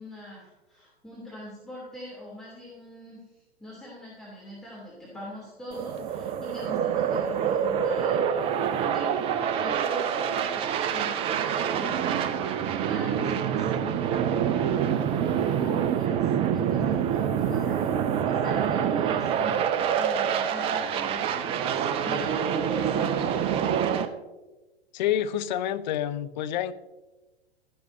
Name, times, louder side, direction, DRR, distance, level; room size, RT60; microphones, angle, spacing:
voice 1, 0.0-9.3 9.6-14.4 15.2-23.6, left 1 dB, ahead, -8 dB, 3.0 m, -43 dB
sound 1, 5.7-24.1, right 8 dB, 20° right, 0.5 m, -26 dB
voice 2, 24.9-26.7, left 11 dB, 45° left, 13 dB, 0.6 m, -28 dB
13.0 x 11.0 x 2.7 m, 1.1 s
figure-of-eight pair, 105°, 32 cm